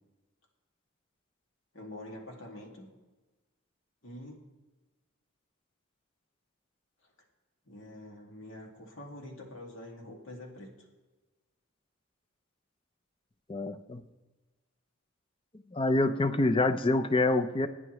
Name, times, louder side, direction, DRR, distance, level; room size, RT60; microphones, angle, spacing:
voice 1, 1.7-2.9 4.0-4.4 7.7-10.7, left 1 dB, 65° left, 0 dB, 2.2 m, -45 dB
voice 2, 13.5-14.0 15.7-17.7, left 2 dB, 25° left, 10 dB, 0.5 m, -26 dB
19.5 x 9.8 x 3.1 m, 1.2 s
head